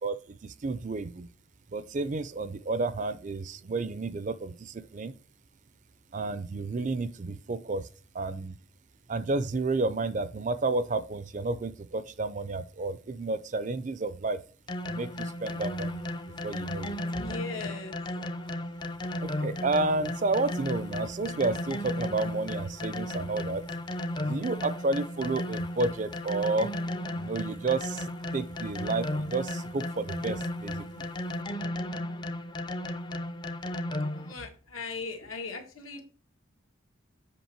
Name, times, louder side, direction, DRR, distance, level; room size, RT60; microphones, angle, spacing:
voice 1, 0.0-1.3 1.7-5.1 6.1-7.9 8.1-8.6 9.1-14.4 14.9-16.1 16.4-17.0 19.2-23.6 24.2-26.7 27.1-28.1 28.3-31.1, right 3 dB, 35° right, 0.4 m, -31 dB
sound 1, 14.7-34.3, left 1 dB, 20° left, 0.5 m, -34 dB
voice 2, 17.1-18.0 34.1-36.0, left 4 dB, 85° left, 1.9 m, -38 dB
8.2 x 5.3 x 4.5 m
head